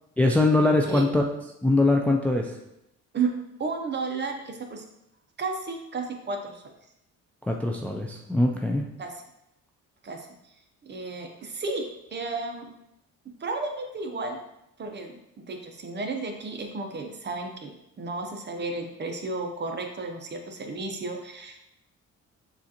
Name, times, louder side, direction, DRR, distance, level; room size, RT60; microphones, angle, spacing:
voice 1, 0.2-1.2 1.6-2.5 7.4-8.8, left 2 dB, 5° left, 1 dB, 0.4 m, -22 dB
voice 2, 3.6-4.8 5.4-6.6 9.0-9.1 10.0-10.3 10.8-12.7 13.4-14.4 14.8-15.2 15.5-21.6, right 3 dB, 35° right, 4 dB, 0.7 m, -33 dB
6.9 x 2.5 x 2.8 m, 0.83 s
cardioid pair, 90°, 30 cm